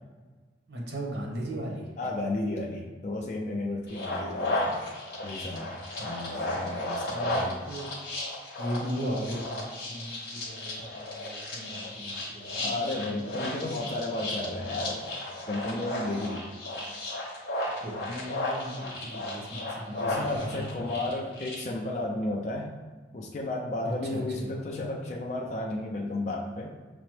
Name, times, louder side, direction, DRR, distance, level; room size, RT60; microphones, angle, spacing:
voice 1, 0.7-1.9 6.0-6.6 7.0-7.9 8.6-12.6 17.8-20.9 23.8-24.5, equal, 70° right, -2 dB, 0.9 m, -37 dB
voice 2, 2.0-4.9 5.2-7.7 12.6-15.0 15.5-16.5 20.0-22.7 23.1-26.8, left 2 dB, 40° left, -1 dB, 0.3 m, -33 dB
sound 1, 3.9-21.6, left 1 dB, 55° left, 1.0 m, -34 dB
5.8 x 2.0 x 3.1 m, 1.4 s
head